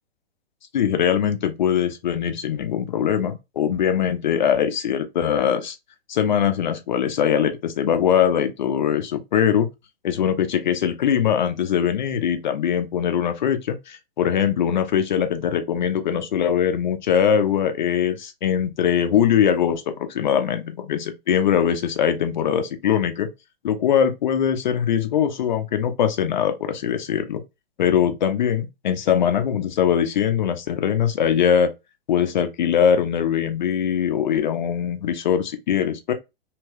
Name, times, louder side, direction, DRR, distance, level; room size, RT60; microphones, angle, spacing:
voice 1, 0.7-5.8 6.1-9.7 10.0-23.3 23.6-27.4 27.8-31.7 32.1-36.1, left 8 dB, 45° left, 0.5 m, -21 dB
2.7 x 2.1 x 3.2 m
figure-of-eight pair, 110°, 31 cm